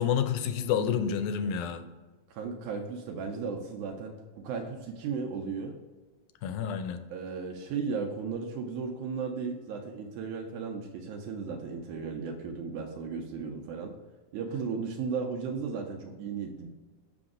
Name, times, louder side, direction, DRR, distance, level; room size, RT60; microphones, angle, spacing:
voice 1, 0.0-1.8 6.4-7.0, left 8 dB, 90° left, 9 dB, 2.1 m, -29 dB
voice 2, 2.3-4.1 4.4-5.8 7.1-13.9 14.3-16.7, right 5 dB, 85° right, 2 dB, 2.1 m, -35 dB
6.1 x 5.0 x 3.7 m, 1.3 s
omnidirectional pair, 3.4 m